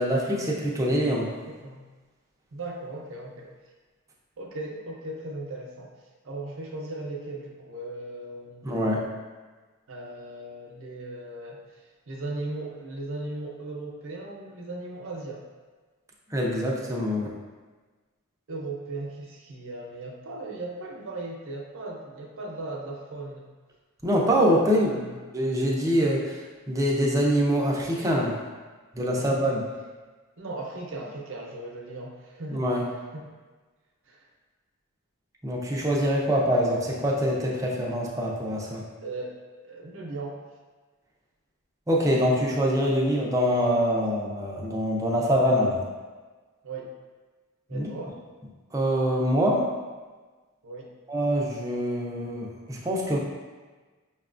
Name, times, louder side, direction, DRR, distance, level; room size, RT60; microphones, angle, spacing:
voice 1, 0.0-1.3 8.6-9.1 16.3-17.3 24.0-25.0 25.3-26.4 26.7-28.4 28.9-29.6 32.5-32.9 35.4-38.9 41.9-45.8 47.7-47.9 48.7-49.7 51.1-53.2, equal, 15° right, -3 dB, 0.5 m, -24 dB
voice 2, 1.5-1.9 2.5-3.5 4.4-5.9 6.2-9.0 9.9-15.5 18.5-23.5 24.6-25.2 29.1-29.6 30.4-32.6 33.1-33.3 34.1-34.3 39.0-39.4 39.6-40.4 46.6-46.9 47.7-48.2 50.6-50.9, right 2 dB, 60° right, -1 dB, 0.6 m, -37 dB
5.5 x 2.2 x 2.5 m, 1.3 s
head